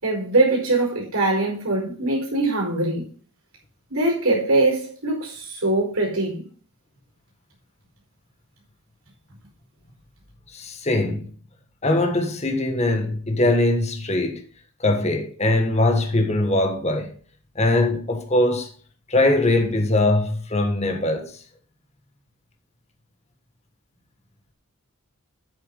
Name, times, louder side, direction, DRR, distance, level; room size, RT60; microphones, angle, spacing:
voice 1, 0.0-3.0 3.9-6.4, right 2 dB, 70° right, 4.8 m, -22 dB
voice 2, 10.5-11.3 11.8-14.4 14.8-17.1 17.5-18.7 19.1-21.3, left 2 dB, 30° left, 1.5 m, -21 dB
8.9 x 6.8 x 5.4 m
head